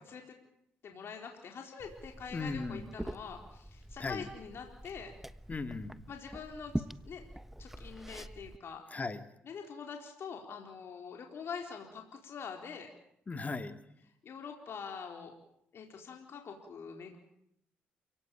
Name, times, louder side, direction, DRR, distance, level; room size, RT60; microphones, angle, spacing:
voice 1, 0.8-5.1 6.1-6.7 7.0-7.2 7.6-8.8 9.4-12.9 14.2-15.3 15.7-17.2, left 6 dB, 60° left, 3 dB, 4.2 m, -44 dB
Liquid, 1.8-8.6, right 1 dB, 5° right, 1.3 m, -44 dB
voice 2, 2.3-2.9 4.0-4.3 5.5-6.0 8.9-9.2 13.3-13.8, left 3 dB, 35° left, 9 dB, 2.2 m, -37 dB
29.0 x 18.0 x 9.1 m, 0.75 s
supercardioid pair, 60°, 5 cm